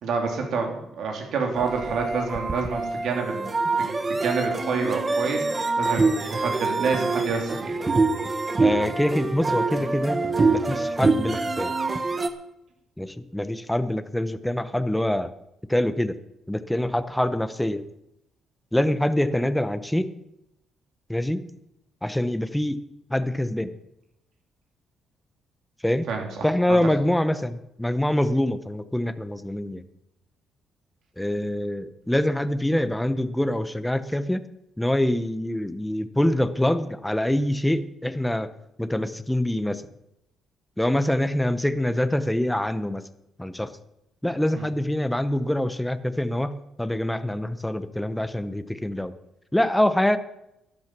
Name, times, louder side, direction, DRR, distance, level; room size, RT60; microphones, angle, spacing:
voice 1, 0.0-3.5 3.8-7.7 26.1-26.3 26.7-26.8 44.5-44.7, right 4 dB, 70° right, 2 dB, 3.2 m, -28 dB
sound 1, 1.6-12.3, right 3 dB, 30° right, 1.1 m, -25 dB
voice 2, 8.6-10.2 10.5-11.7 13.0-15.3 15.7-16.2 16.5-17.8 18.7-20.1 21.1-21.4 22.0-22.8 23.1-23.7 25.8-26.1 26.4-29.8 31.2-34.4 34.8-38.5 38.8-39.8 40.8-43.0 43.4-43.7 44.2-49.1 49.5-50.2, left 1 dB, 5° left, 12 dB, 0.9 m, -25 dB
12.0 x 11.0 x 6.0 m, 0.84 s
cardioid pair, 90°, 0 cm